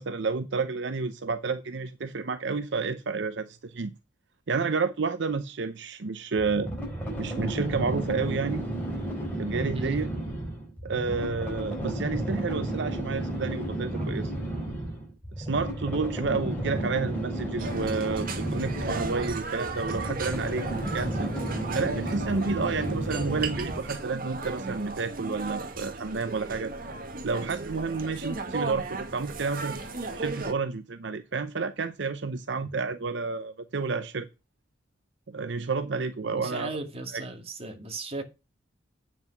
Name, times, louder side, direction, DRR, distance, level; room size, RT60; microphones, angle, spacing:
voice 1, 0.0-3.9 4.5-6.7 7.2-8.6 9.4-10.1 10.8-14.3 15.4-20.7 20.9-21.3 21.7-26.7 27.2-29.8 30.1-34.3 35.3-36.7 37.1-37.2, right 4 dB, 70° right, 0.7 m, -30 dB
sound 1, 6.4-24.0, right 1 dB, 10° left, 5.0 m, -32 dB
voice 2, 14.0-14.8 18.6-18.9 32.6-32.7 36.3-38.2, right 2 dB, 30° right, 2.1 m, -38 dB
sound 2, 17.6-30.5, right 3 dB, 50° right, 1.8 m, -36 dB
9.0 x 6.1 x 5.8 m
head